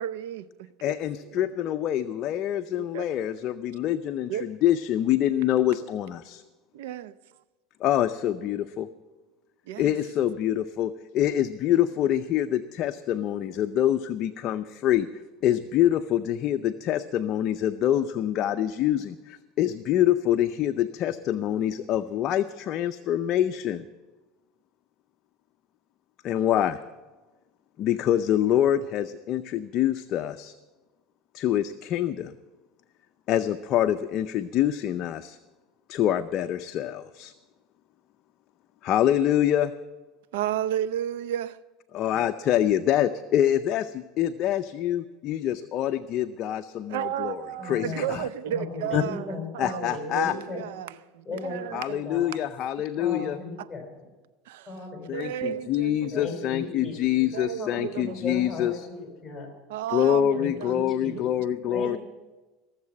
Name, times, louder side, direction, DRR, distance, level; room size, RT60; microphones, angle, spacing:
voice 1, 0.0-1.0 1.3-1.5 2.8-3.0 4.3-4.4 6.7-7.2 9.7-10.0 40.3-41.6 46.9-52.2 53.6-53.7 54.5-54.7 55.1-56.5 56.8-56.9 57.3-58.2 59.7-62.0, right 11 dB, 85° right, 0.6 m, -33 dB
voice 2, 0.8-6.4 7.8-8.9 9.8-15.1 15.4-23.8 26.2-26.8 27.8-30.5 31.3-32.3 33.3-35.4 35.9-37.3 38.8-39.7 41.9-48.2 48.9-49.0 49.6-50.3 51.7-53.4 55.1-58.9 59.9-62.0, left 11 dB, 50° left, 0.6 m, -25 dB
voice 3, 47.6-48.0 48.5-50.6 51.2-51.7 52.0-52.3 53.0-53.9 54.7-55.5 56.1-59.5 60.3-61.1 61.7-62.0, left 3 dB, 10° left, 5.0 m, -36 dB
17.5 x 7.4 x 8.7 m
supercardioid pair, 110°, 0 cm